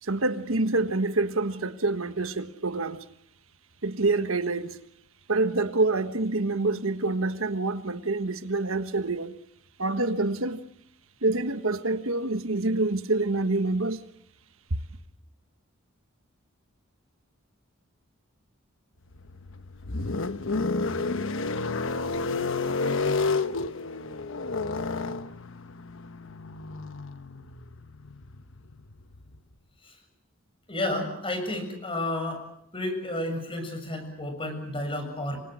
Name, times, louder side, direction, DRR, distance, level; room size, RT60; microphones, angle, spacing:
voice 1, 0.0-3.0 3.8-4.8 5.3-9.3 9.8-10.6 11.2-14.0, right 2 dB, 70° right, 1.5 m, -26 dB
sound 1, 19.1-29.4, left 3 dB, 65° left, 1.2 m, -31 dB
voice 2, 30.7-32.4 32.7-35.4, left 1 dB, 25° left, 7.4 m, -31 dB
29.0 x 24.5 x 6.3 m
head